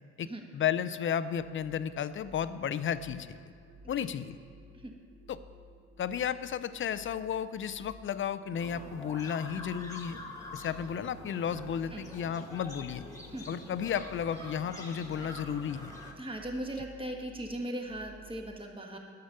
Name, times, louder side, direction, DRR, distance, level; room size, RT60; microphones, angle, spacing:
voice 1, 0.2-3.4 3.9-4.4 5.3-5.4 6.0-10.2 10.5-13.0 13.5-15.9, left 8 dB, 40° left, 14 dB, 0.5 m, -33 dB
sound 1, 1.4-18.4, left 1 dB, 55° right, 2.2 m, -55 dB
sound 2, 8.5-16.1, left 1 dB, 10° left, 1.6 m, -46 dB
voice 2, 13.3-13.6 16.2-19.0, right 1 dB, 15° right, 2 dB, 1.5 m, -38 dB
10.0 x 6.9 x 6.6 m, 2.3 s
cardioid pair, 90°, 30 cm